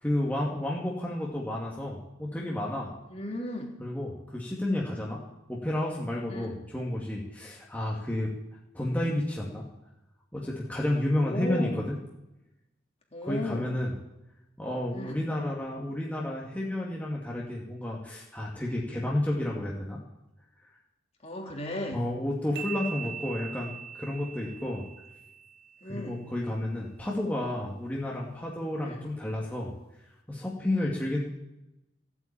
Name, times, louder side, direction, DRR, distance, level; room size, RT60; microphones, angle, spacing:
voice 1, 0.0-2.9 3.8-5.2 5.5-8.3 8.7-9.7 10.3-12.0 13.2-14.0 14.6-20.0 21.4-21.5 21.9-24.8 25.9-29.7 30.3-31.2, left 1 dB, 10° left, -4 dB, 2.3 m, -31 dB
voice 2, 3.1-3.7 6.3-6.5 11.2-11.8 13.1-13.7 14.9-15.2 21.2-22.0 25.8-26.3 28.8-29.1 30.8-30.9, left 1 dB, 35° left, 1 dB, 3.3 m, -35 dB
sound 1, 22.6-26.1, right 7 dB, 60° right, 1.8 m, -41 dB
15.5 x 8.9 x 9.0 m, 0.93 s
head